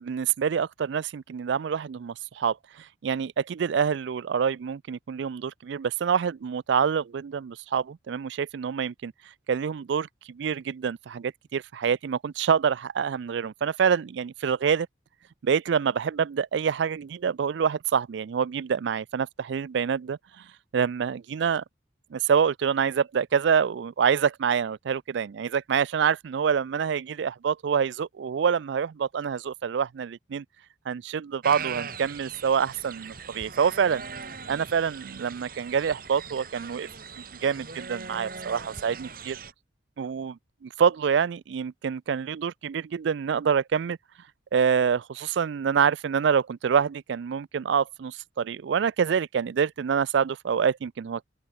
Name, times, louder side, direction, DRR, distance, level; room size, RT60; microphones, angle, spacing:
voice 1, 0.0-9.1 9.5-14.9 15.4-20.2 20.7-21.6 22.1-30.4 30.9-34.0 34.5-36.9 37.4-39.4 40.0-44.0 44.5-51.2, right 7 dB, 65° right, 0.4 m, -26 dB
sound 1, 31.4-39.5, right 6 dB, 45° right, 2.5 m, -40 dB
open air
head